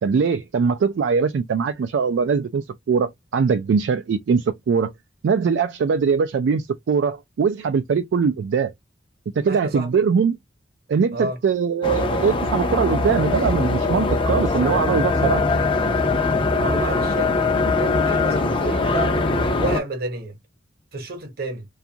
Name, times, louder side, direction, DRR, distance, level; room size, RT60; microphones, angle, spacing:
voice 1, 0.0-4.9 5.2-8.7 9.4-10.4 10.9-15.4, right 6 dB, 70° right, 0.3 m, -21 dB
voice 2, 9.4-10.0 11.1-11.4 16.6-17.4 17.7-19.3 19.6-20.4 20.9-21.7, right 1 dB, 55° right, 0.9 m, -30 dB
sound 1, 11.8-19.8, left 3 dB, 30° left, 0.5 m, -21 dB
2.5 x 2.3 x 2.7 m
head